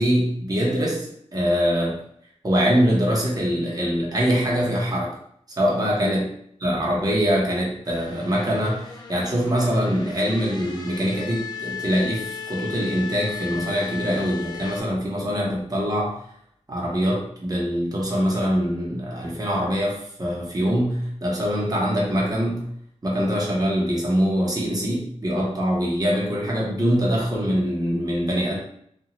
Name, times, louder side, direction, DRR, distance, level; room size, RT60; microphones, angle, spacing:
voice 1, 0.0-2.0 2.4-5.1 5.6-6.2 6.6-16.2 16.7-22.7 23.0-28.6, equal, 30° right, -4 dB, 0.9 m, -23 dB
sound 1, 7.8-14.8, left 6 dB, 35° left, 0.4 m, -36 dB
2.6 x 2.3 x 3.0 m, 0.69 s
wide cardioid pair, 90°, 12 cm